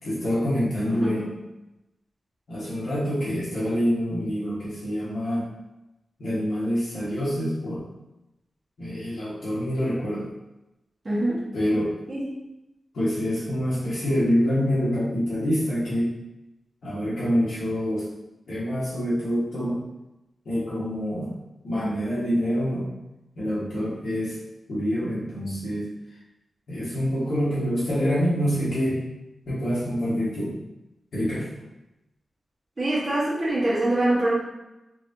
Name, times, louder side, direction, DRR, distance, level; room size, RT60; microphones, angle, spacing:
voice 1, 0.0-1.2 2.5-5.4 6.2-7.8 8.8-10.3 11.5-11.9 12.9-16.1 16.8-18.0 18.5-19.8 20.4-21.3 21.6-22.9 23.4-24.4 24.7-25.9 26.7-29.0 29.5-30.5 31.1-31.5, equal, 65° left, -10 dB, 1.4 m, -26 dB
voice 2, 0.9-1.3 11.0-11.4 12.1-12.3 32.8-34.3, right 1 dB, 30° right, -8 dB, 1.0 m, -24 dB
4.5 x 2.7 x 2.6 m, 0.95 s
wide cardioid pair, 135°, 0 cm